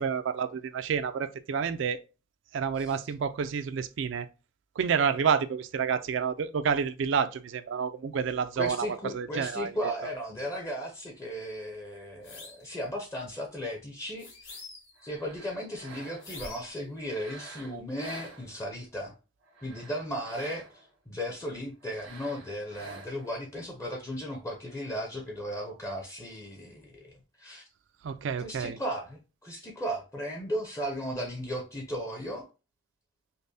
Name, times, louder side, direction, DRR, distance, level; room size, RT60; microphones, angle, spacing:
voice 1, 0.0-2.0 2.5-4.3 4.8-9.7 28.0-28.8, right 6 dB, 65° right, 0.3 m, -29 dB
voice 2, 8.6-14.6 15.0-19.1 19.6-20.6 21.1-27.6 28.4-32.5, equal, 15° left, 0.6 m, -36 dB
sound 1, 12.2-12.7 14.2-15.0 16.2-16.8, left 3 dB, 80° left, 1.9 m, -45 dB
sound 2, 15.0-16.5 17.0-18.9 19.4-20.9 21.8-23.4, right 3 dB, 90° right, 1.2 m, -48 dB
5.2 x 2.1 x 2.6 m
head